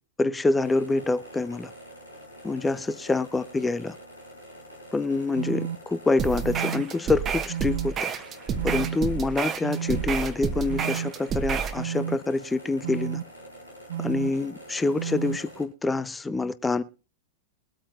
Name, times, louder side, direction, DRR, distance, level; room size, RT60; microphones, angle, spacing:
voice 1, 0.2-1.7 2.4-3.9 4.9-8.1 8.6-13.2 14.0-16.8, left 3 dB, 10° left, 0.7 m, -26 dB
sound 1, 0.6-15.6, equal, 85° left, 3.2 m, -46 dB
sound 2, 5.4-5.8 6.4-6.8 7.5-7.9 8.6-9.0 9.6-10.0 10.7-11.1 11.8-12.2 12.8-13.2 13.9-14.3 15.0-15.4, right 9 dB, 60° right, 0.6 m, -31 dB
sound 3, 6.2-11.8, right 7 dB, 25° right, 1.2 m, -30 dB
22.0 x 8.6 x 2.5 m
figure-of-eight pair, 90°, 0 cm